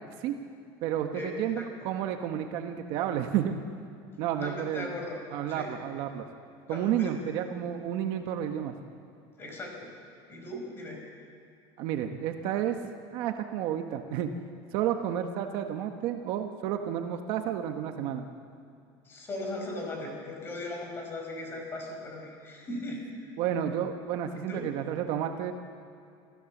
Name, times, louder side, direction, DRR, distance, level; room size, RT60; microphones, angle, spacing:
voice 1, 0.8-3.6 4.2-4.9 5.3-6.2 6.7-8.7 11.8-12.8 13.1-14.3 14.7-18.3 23.4-25.5, right 10 dB, 55° right, 5 dB, 1.3 m, -31 dB
voice 2, 4.4-5.2 5.5-5.7 6.7-7.1 9.4-9.9 10.3-11.0 19.0-23.0 24.5-24.6, left 1 dB, 20° left, 1 dB, 5.0 m, -38 dB
27.5 x 15.5 x 7.3 m, 2.5 s
cardioid pair, 170°, 11 cm